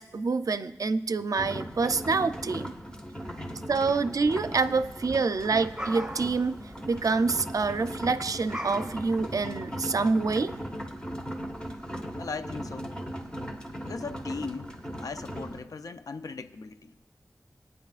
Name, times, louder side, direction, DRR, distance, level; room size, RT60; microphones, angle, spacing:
voice 1, 0.0-2.7 3.7-6.6 6.9-10.5, right 4 dB, 70° right, 11 dB, 0.5 m, -27 dB
sound 1, 1.4-15.6, equal, 15° left, 1.5 m, -38 dB
sound 2, 4.5-9.6, right 1 dB, 15° right, 1.6 m, -42 dB
voice 2, 12.1-12.9 13.8-14.7 15.0-17.0, left 4 dB, 85° left, 10 dB, 0.5 m, -38 dB
23.5 x 9.3 x 2.4 m, 1.1 s
wide cardioid pair, 60°, 6 cm